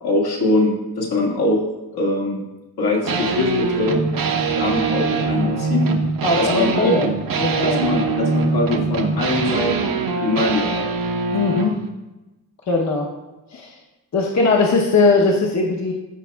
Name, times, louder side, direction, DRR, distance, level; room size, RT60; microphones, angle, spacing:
voice 1, 0.0-1.6 1.9-2.4 2.8-4.0 4.6-5.9 6.3-7.0 7.6-10.9, left 2 dB, 80° left, -3 dB, 1.9 m, -22 dB
sound 1, 3.1-11.7, right 4 dB, 60° right, 0.8 m, -22 dB
voice 2, 6.2-7.1 7.4-7.8 11.3-11.8 12.7-13.1 13.5-13.7 14.1-15.9, left 3 dB, 45° left, -1 dB, 0.9 m, -19 dB
14.5 x 5.3 x 2.3 m, 1.1 s
wide cardioid pair, 175°, 38 cm